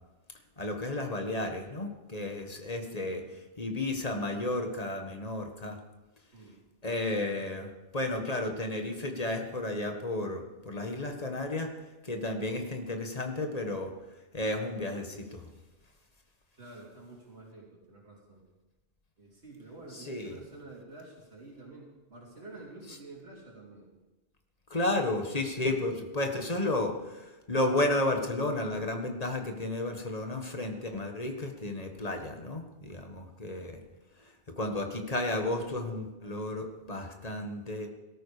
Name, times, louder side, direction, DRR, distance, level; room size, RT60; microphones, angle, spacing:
voice 1, 0.6-3.2 3.6-5.8 6.8-11.7 12.0-13.9 14.3-15.5 19.9-20.4 24.7-33.8 34.6-37.9, left 2 dB, 40° left, 4 dB, 1.7 m, -32 dB
voice 2, 16.5-18.4 19.2-23.9, right 2 dB, 80° right, -3 dB, 3.2 m, -49 dB
18.0 x 13.0 x 5.1 m, 1.1 s
omnidirectional pair, 1.1 m